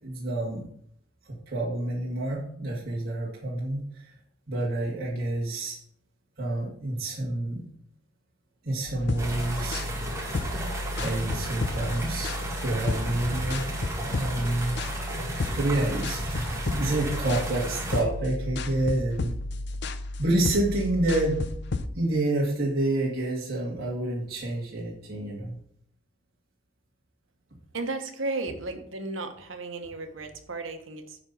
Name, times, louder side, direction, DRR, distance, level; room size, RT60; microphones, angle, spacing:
voice 1, 0.0-0.6 1.2-4.1 4.5-5.8 6.4-7.6 8.6-9.9 11.0-13.7 14.1-14.8 15.6-19.3 20.2-21.4 22.0-25.6, right 1 dB, 50° right, -6 dB, 2.3 m, -28 dB
sound 1, 8.9-21.9, left 2 dB, 60° left, 0.6 m, -33 dB
sound 2, 9.2-18.0, right 1 dB, 15° right, 1.9 m, -34 dB
voice 2, 27.7-31.2, right 3 dB, 80° right, 6 dB, 1.3 m, -34 dB
9.8 x 4.4 x 7.0 m, 0.65 s
head